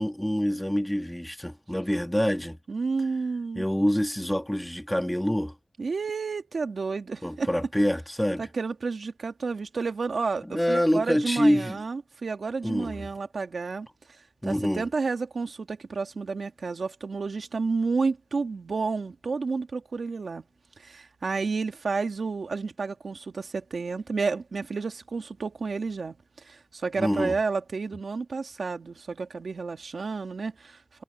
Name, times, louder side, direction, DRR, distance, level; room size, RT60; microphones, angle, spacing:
voice 1, 0.0-2.6 3.6-5.5 7.2-8.5 10.5-11.8 12.6-13.1 14.4-14.9 27.0-27.4, equal, 5° left, 1.9 m, -26 dB
voice 2, 2.7-3.7 5.8-7.5 8.4-13.9 14.4-20.4 20.8-31.0, right 4 dB, 85° right, 2.1 m, -31 dB
wide cardioid pair, 65°, 0 cm